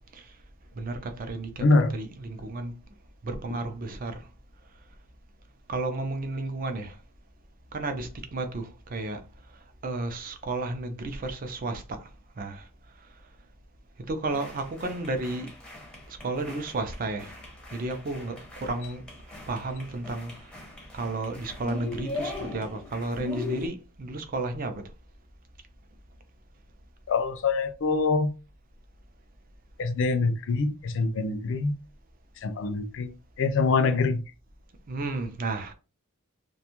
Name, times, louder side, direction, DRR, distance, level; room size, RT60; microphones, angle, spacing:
voice 1, 0.7-1.6 1.9-2.7 3.2-4.3 5.7-7.0 7.7-9.2 9.8-12.1 12.4-12.7 14.1-15.5 16.1-17.4 17.7-19.0 19.5-20.5 20.9-24.8 34.9-35.7, right 2 dB, 40° right, 0.5 m, -32 dB
voice 2, 1.6-1.9 27.1-28.3 29.8-31.7 32.4-33.1 33.4-34.2, left 3 dB, 60° left, 0.4 m, -24 dB
sound 1, 14.3-23.7, left 3 dB, 5° left, 0.6 m, -40 dB
2.6 x 2.3 x 2.9 m
head